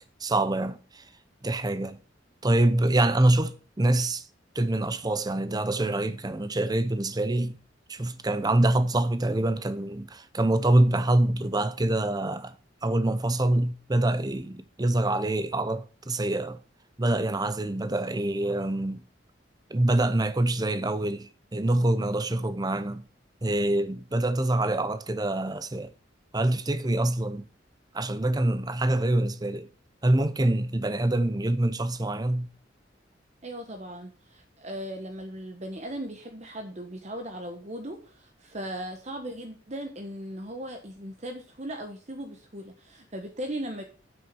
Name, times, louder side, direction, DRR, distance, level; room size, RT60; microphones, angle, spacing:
voice 1, 0.2-1.1 1.4-2.0 2.4-4.3 4.5-7.6 7.9-12.6 12.8-16.6 17.0-19.0 19.7-23.0 23.4-25.9 26.3-27.4 27.9-29.7 30.0-32.5, right 1 dB, 20° right, 0.7 m, -25 dB
voice 2, 33.4-43.8, right 1 dB, 40° right, 1.2 m, -38 dB
7.7 x 6.4 x 6.9 m
head